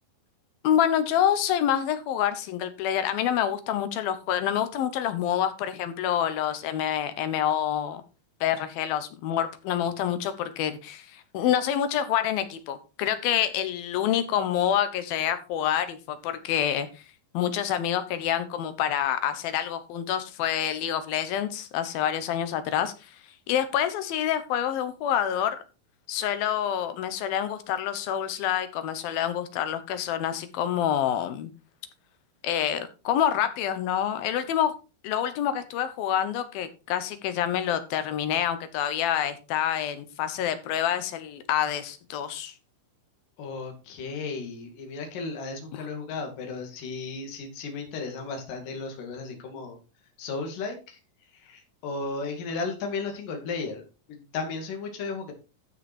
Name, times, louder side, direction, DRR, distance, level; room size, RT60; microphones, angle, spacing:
voice 1, 0.6-8.0 8.4-17.0 17.3-23.2 23.5-25.6 26.1-31.5 32.4-34.7 35.0-42.5, left 10 dB, 80° left, 11 dB, 3.0 m, -27 dB
voice 2, 43.4-49.8 50.2-51.0 51.3-55.3, left 4 dB, 65° left, 3 dB, 3.8 m, -35 dB
13.0 x 5.9 x 4.4 m, 0.31 s
omnidirectional pair, 4.2 m